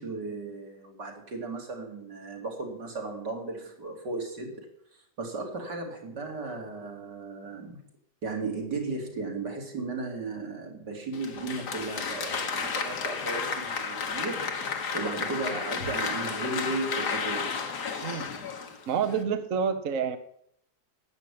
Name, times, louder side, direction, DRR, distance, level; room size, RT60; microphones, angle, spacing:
voice 1, 0.0-4.7 5.2-7.8 8.2-14.6 14.9-17.7, right 3 dB, 85° right, 1 dB, 3.5 m, -35 dB
Applause, 11.1-19.2, left 5 dB, 75° left, 2.0 m, -32 dB
voice 2, 18.9-20.2, right 7 dB, 55° right, 9 dB, 1.2 m, -28 dB
12.5 x 9.0 x 8.5 m, 0.71 s
omnidirectional pair, 1.8 m